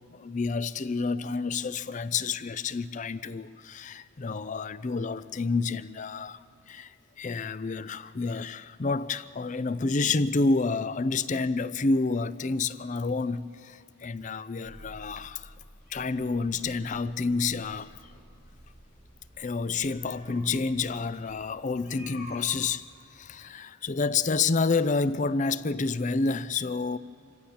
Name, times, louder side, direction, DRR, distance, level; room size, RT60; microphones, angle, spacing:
voice 1, 0.1-6.4 6.7-15.5 15.9-17.9 19.4-22.8 23.1-27.0, left 4 dB, 40° left, 0.5 m, -29 dB
sound 1, 13.8-23.3, left 1 dB, 60° left, 4.9 m, -53 dB
sound 2, 14.6-21.5, equal, 10° left, 2.0 m, -54 dB
26.0 x 16.0 x 7.3 m
head